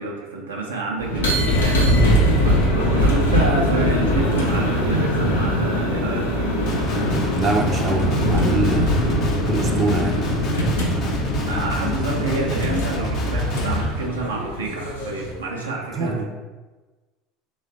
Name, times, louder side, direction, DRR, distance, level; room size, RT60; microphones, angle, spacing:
voice 1, 0.0-1.9 2.4-6.4 10.9-11.2 11.5-16.1, right 3 dB, 90° right, -1 dB, 0.7 m, -28 dB
sound 1, 1.0-15.4, equal, 85° left, 0.7 m, -21 dB
Guitar, 6.7-13.8, left 2 dB, 55° left, 0.8 m, -29 dB
voice 2, 7.4-10.2 15.9-16.2, right 3 dB, 35° right, 2 dB, 0.5 m, -24 dB
3.2 x 3.1 x 3.9 m, 1.3 s
hypercardioid pair, 75°, 0 cm